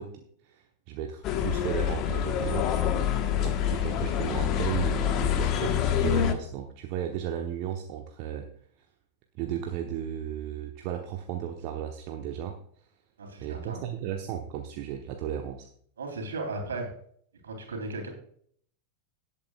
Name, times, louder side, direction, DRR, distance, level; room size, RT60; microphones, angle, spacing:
voice 1, 0.0-8.5 9.4-12.6 13.4-15.7, right 10 dB, 45° right, 3 dB, 1.0 m, -35 dB
sound 1, 1.2-6.3, left 9 dB, 35° left, 1.2 m, -26 dB
voice 2, 13.2-13.8 16.0-16.9 17.4-18.1, right 2 dB, 65° right, 3 dB, 3.4 m, -35 dB
18.0 x 8.7 x 2.4 m, 0.62 s
figure-of-eight pair, 90°, 0 cm